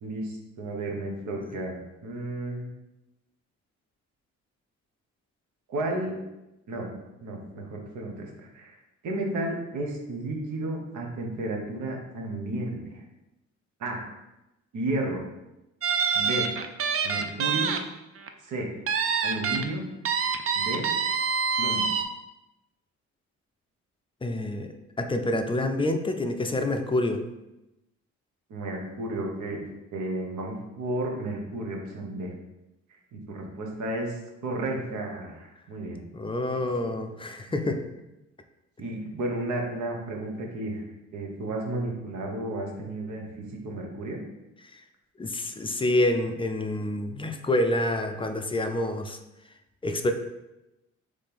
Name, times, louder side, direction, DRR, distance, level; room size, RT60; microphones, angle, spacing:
voice 1, 0.0-2.7 5.7-6.2 6.7-6.9 7.2-8.8 9.0-13.0 13.8-14.1 14.7-15.2 16.1-16.5 17.0-17.7 18.4-18.7 19.2-19.8 20.5-20.9 21.6-21.9 28.5-29.6 29.9-32.3 32.9-36.0 36.6-36.9 37.5-37.7 38.8-40.8 41.1-44.2, right 2 dB, 75° right, 1 dB, 1.1 m, -33 dB
sound 1, 15.8-17.8 18.2-18.3 18.9-19.6 20.0-22.0, right 6 dB, 50° right, 0.5 m, -26 dB
voice 2, 24.2-27.2 36.1-37.8 44.7-44.8 45.2-49.2 49.8-50.1, left 1 dB, 20° left, 6 dB, 0.4 m, -27 dB
4.2 x 3.3 x 3.5 m, 0.94 s
cardioid pair, 90°, 30 cm